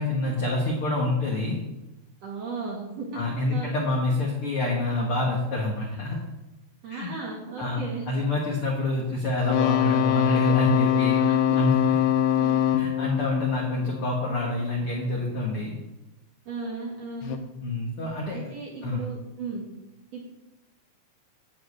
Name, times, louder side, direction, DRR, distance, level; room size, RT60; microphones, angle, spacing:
voice 1, 0.0-1.6 3.1-6.2 6.9-7.1 7.6-11.2 11.5-11.8 12.8-15.8 17.6-18.4 18.8-19.0, left 2 dB, 65° left, -1 dB, 1.3 m, -27 dB
voice 2, 2.2-3.2 3.5-3.7 6.8-8.0 11.1-11.4 12.4-12.6 16.5-17.4 18.3-19.6 20.1-20.3, right 4 dB, 55° right, -2 dB, 2.0 m, -36 dB
sound 1, 9.4-14.4 17.2-17.4, left 10 dB, 85° left, 2.9 m, -23 dB
10.0 x 5.2 x 8.2 m, 0.98 s
omnidirectional pair, 4.8 m